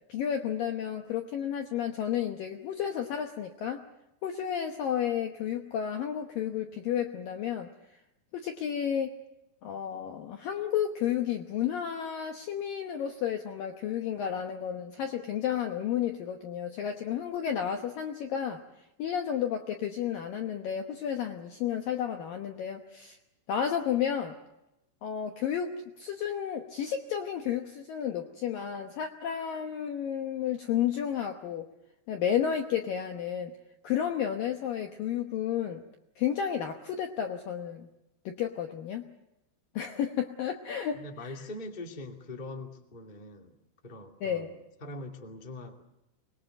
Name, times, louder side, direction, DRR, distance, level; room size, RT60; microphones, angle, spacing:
voice 1, 0.1-3.8 4.2-7.7 8.3-9.2 9.6-18.6 19.0-23.2 23.5-24.4 25.0-25.7 26.0-31.7 32.1-33.6 33.8-35.8 36.2-37.9 38.3-39.0 39.7-41.3 44.2-44.5, left 9 dB, 70° left, 4 dB, 2.2 m, -32 dB
voice 2, 40.9-43.6 43.8-45.8, left 2 dB, 20° left, 2 dB, 1.2 m, -42 dB
25.0 x 21.5 x 7.9 m, 0.89 s
omnidirectional pair, 5.4 m